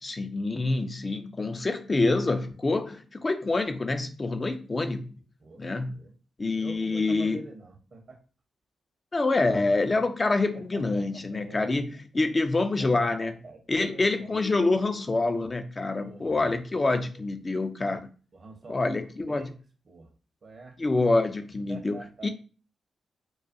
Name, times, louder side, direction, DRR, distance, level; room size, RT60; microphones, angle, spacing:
voice 1, 0.0-5.1 5.6-6.0 6.4-7.4 9.1-13.4 13.7-18.1 18.7-19.5 20.8-22.3, left 3 dB, 35° left, 8 dB, 0.3 m, -26 dB
voice 2, 6.6-8.2 10.7-11.8 12.8-14.4 15.9-16.5 17.1-17.3 18.3-18.9 19.3-19.6 19.9-20.1 20.4-20.8 21.7-22.3, right 3 dB, 60° right, 3 dB, 0.7 m, -46 dB
2.3 x 2.2 x 2.5 m, 0.36 s
supercardioid pair, 40°, 0 cm